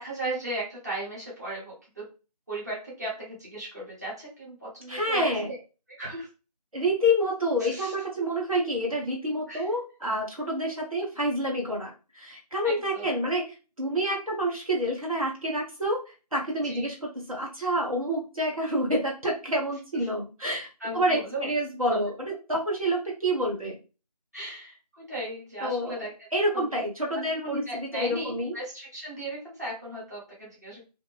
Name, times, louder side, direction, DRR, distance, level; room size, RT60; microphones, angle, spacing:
voice 1, 0.0-2.1 2.5-5.6 6.0-6.3 7.7-7.9 9.5-9.7 12.6-13.2 16.6-16.9 20.8-21.5 21.9-22.0 24.3-26.1 26.5-26.7 27.1-30.8, right 1 dB, 25° right, -6 dB, 0.9 m, -36 dB
voice 2, 4.9-5.5 6.7-13.4 13.8-20.7 20.9-23.8 25.6-26.0 26.3-28.5, equal, 55° right, -2 dB, 0.8 m, -28 dB
2.5 x 2.0 x 3.3 m, 0.32 s
figure-of-eight pair, 170°, 21 cm